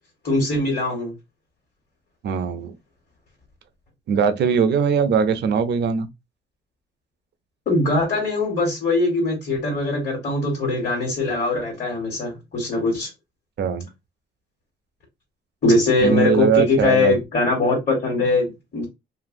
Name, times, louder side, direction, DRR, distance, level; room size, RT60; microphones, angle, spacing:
voice 1, 0.2-1.1 7.7-13.1 15.6-18.8, left 2 dB, 45° left, 1.4 m, -21 dB
voice 2, 2.2-2.7 4.1-6.1 13.6-13.9 16.0-17.2, right 6 dB, 60° right, 0.5 m, -20 dB
2.7 x 2.5 x 2.6 m
cardioid pair, 90°, 20 cm